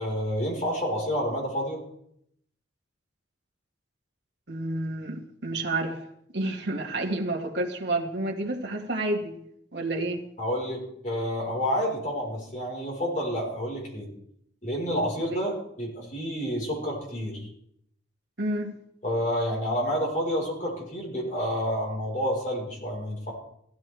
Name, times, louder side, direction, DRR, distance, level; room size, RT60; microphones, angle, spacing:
voice 1, 0.0-1.8 10.4-14.1 14.6-15.5 15.8-17.5 19.0-23.3, equal, 40° left, -2 dB, 4.8 m, -29 dB
voice 2, 4.5-6.0 6.3-9.3 9.7-10.2 15.3-15.4 18.4-18.7, right 2 dB, 60° right, 1 dB, 2.2 m, -29 dB
15.5 x 13.5 x 3.5 m, 0.71 s
head